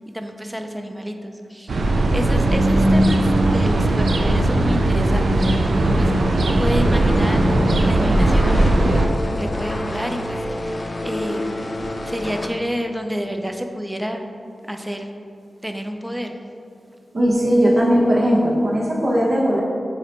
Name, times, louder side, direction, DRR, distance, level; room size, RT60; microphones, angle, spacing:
voice 1, 0.1-1.8 2.1-7.4 7.8-9.1 9.4-14.3 14.7-15.1 15.6-16.4, equal, 10° right, 5 dB, 0.5 m, -29 dB
sound 1, 1.7-9.1, right 1 dB, 75° right, 0.5 m, -18 dB
Wind instrument woodwind instrument, 5.9-12.0, equal, 5° left, 1.1 m, -39 dB
sound 2, 6.6-12.5, left 1 dB, 40° left, 0.5 m, -28 dB
voice 2, 17.1-19.6, equal, 60° right, -4 dB, 1.3 m, -18 dB
7.3 x 3.0 x 4.3 m, 2.5 s
wide cardioid pair, 80°, 0 cm